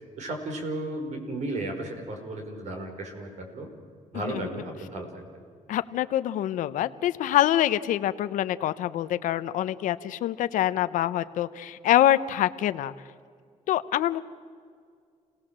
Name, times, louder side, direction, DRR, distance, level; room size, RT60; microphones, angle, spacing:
voice 1, 0.2-3.7 4.1-5.2, right 2 dB, 65° right, 3 dB, 5.3 m, -34 dB
voice 2, 4.3-4.6 5.7-12.9 13.7-14.2, left 12 dB, 90° left, 14 dB, 0.9 m, -25 dB
29.5 x 18.5 x 7.6 m, 2.1 s
cardioid pair, 115°, 13 cm